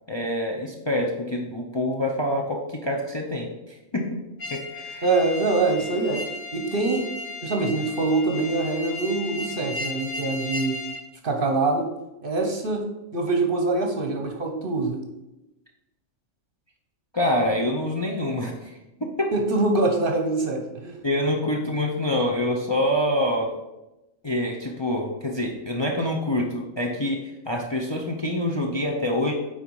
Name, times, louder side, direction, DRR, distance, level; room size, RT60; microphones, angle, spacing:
voice 1, 0.1-4.2 4.5-5.1 17.1-18.7 19.0-19.3 21.0-23.5 24.2-29.3, left 1 dB, 25° left, 0 dB, 0.7 m, -26 dB
sound 1, 4.4-11.0, left 3 dB, 65° left, 1.9 m, -35 dB
voice 2, 5.0-6.2 6.5-7.0 7.4-10.8 11.2-11.9 12.2-12.9 13.1-15.0 19.3-21.0, right 3 dB, 45° right, 3 dB, 1.1 m, -24 dB
9.3 x 4.2 x 4.7 m, 0.97 s
omnidirectional pair, 1.3 m